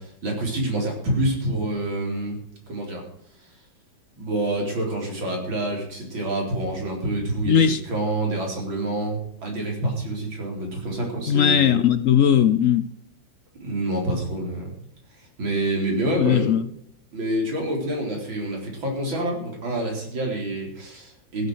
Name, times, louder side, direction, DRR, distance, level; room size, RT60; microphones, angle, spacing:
voice 1, 0.0-2.4 2.7-3.0 4.2-11.8 13.6-14.7 15.4-16.5 17.1-21.5, right 1 dB, 80° right, 4.9 m, -27 dB
voice 2, 7.4-7.8 11.3-12.9 16.1-16.7, left 9 dB, 70° left, 0.7 m, -19 dB
15.5 x 8.3 x 6.5 m
omnidirectional pair, 2.1 m